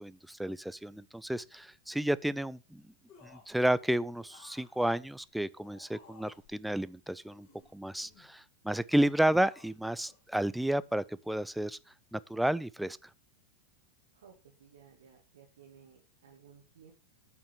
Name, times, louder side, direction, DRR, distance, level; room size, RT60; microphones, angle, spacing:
voice 1, 0.0-2.8 3.2-7.5 7.7-11.8 12.1-13.0, right 1 dB, ahead, 0.4 m, -31 dB
sound 1, 3.1-3.6 4.2-6.6 7.2-8.3 8.9-9.8 10.1-10.2, left 5 dB, 35° left, 3.7 m, -58 dB
voice 2, 14.1-16.9, right 7 dB, 60° right, 2.2 m, -58 dB
8.7 x 5.8 x 7.0 m
figure-of-eight pair, 90°, 0 cm